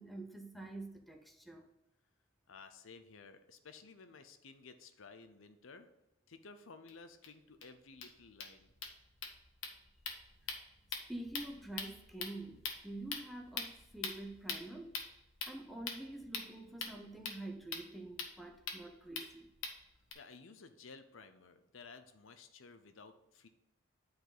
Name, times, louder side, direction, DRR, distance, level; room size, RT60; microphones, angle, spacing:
voice 1, 0.0-1.7 11.1-14.9 15.4-19.5, right 2 dB, ahead, 3 dB, 0.8 m, -47 dB
voice 2, 2.5-5.9 6.3-8.7 20.1-23.5, left 4 dB, 70° left, 9 dB, 0.7 m, -55 dB
sound 1, 6.9-7.0 7.2-7.3 7.6-7.7 7.9-20.1, left 5 dB, 90° left, 1.3 m, -45 dB
9.4 x 4.7 x 4.0 m, 0.92 s
head